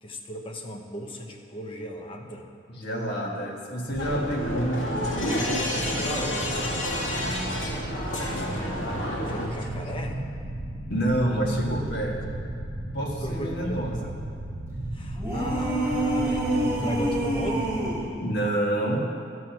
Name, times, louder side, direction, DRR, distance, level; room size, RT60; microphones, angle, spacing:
voice 1, 0.0-2.5 9.1-10.1 13.2-13.8 14.9-17.8, equal, 25° left, 2 dB, 0.9 m, -37 dB
voice 2, 2.7-5.5 5.8-7.3 9.4-9.7 10.9-12.2 12.9-14.1 18.2-19.1, right 1 dB, 60° left, -1 dB, 1.7 m, -29 dB
sound 1, 3.9-18.1, right 1 dB, 45° right, 0.9 m, -35 dB
sound 2, 4.0-9.5, left 1 dB, 90° left, 1.9 m, -29 dB
sound 3, 15.2-18.1, right 1 dB, 15° right, 2.1 m, -26 dB
14.0 x 6.2 x 6.0 m, 2.3 s
head